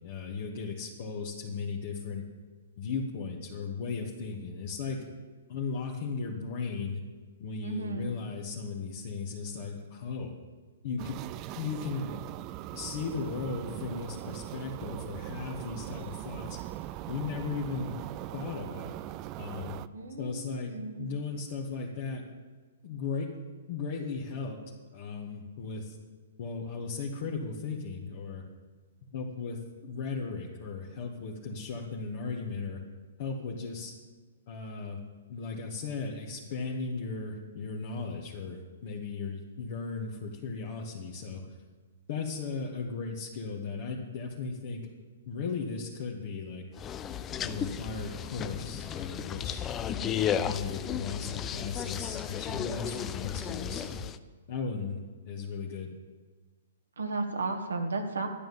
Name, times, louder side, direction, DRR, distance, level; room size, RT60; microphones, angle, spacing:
voice 1, 0.0-2.2 2.8-5.1 5.5-7.0 7.4-10.3 10.8-11.2 11.5-12.1 12.7-16.6 17.1-18.0 18.3-19.0 19.4-19.8 20.2-22.2 22.8-23.3 23.7-24.6 24.9-26.0 26.4-28.4 29.1-32.8 33.2-33.9 34.5-35.0 35.3-41.4 42.1-44.9 45.3-46.6 47.4-49.7 50.0-54.0 54.5-55.9, left 4 dB, 50° left, -2 dB, 1.9 m, -36 dB
voice 2, 7.6-8.2 19.9-21.1 57.0-58.3, right 3 dB, 80° right, 3 dB, 1.9 m, -34 dB
sound 1, 11.0-19.9, right 14 dB, 35° right, 0.5 m, -40 dB
sound 2, 46.8-54.2, left 9 dB, 20° left, 0.6 m, -34 dB
12.5 x 9.4 x 7.2 m, 1.4 s
hypercardioid pair, 120°, 0 cm